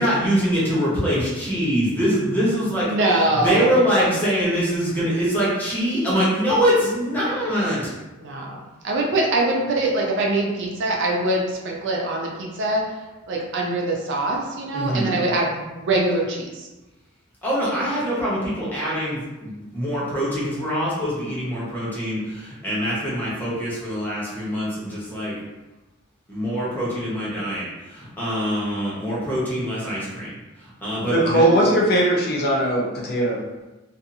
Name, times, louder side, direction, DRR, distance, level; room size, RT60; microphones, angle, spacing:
voice 1, 0.0-2.9 3.4-7.9 14.7-15.2 17.4-25.3 26.3-30.3 30.8-31.4, equal, 10° left, -8 dB, 0.9 m, -23 dB
voice 2, 2.9-3.8 8.2-12.9 13.3-16.7, right 2 dB, 55° right, -1 dB, 0.5 m, -23 dB
voice 3, 31.1-33.4, right 1 dB, 50° left, -3 dB, 0.6 m, -19 dB
2.6 x 2.4 x 2.6 m, 1.1 s
head